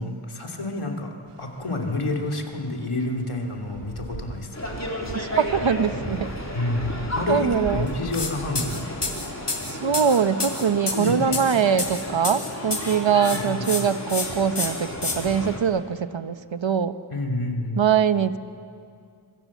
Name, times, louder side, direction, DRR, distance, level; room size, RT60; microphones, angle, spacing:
voice 1, 0.0-4.7 6.5-9.0 10.9-11.3 13.3-13.9 17.1-17.9, left 2 dB, 85° left, 1 dB, 2.9 m, -29 dB
sound 1, 1.3-9.5, right 4 dB, 90° right, 1.4 m, -41 dB
sound 2, 4.5-15.6, left 1 dB, 30° left, 3.6 m, -33 dB
voice 2, 5.1-6.3 7.3-7.9 9.7-17.0 17.8-18.4, right 7 dB, 65° right, 12 dB, 1.0 m, -23 dB
sound 3, 8.1-8.3 8.5-13.0 13.2-13.8 14.1-14.2 14.5-15.1, left 3 dB, 55° left, 3.8 m, -28 dB
25.0 x 24.0 x 7.3 m, 2.4 s
wide cardioid pair, 60°, 50 cm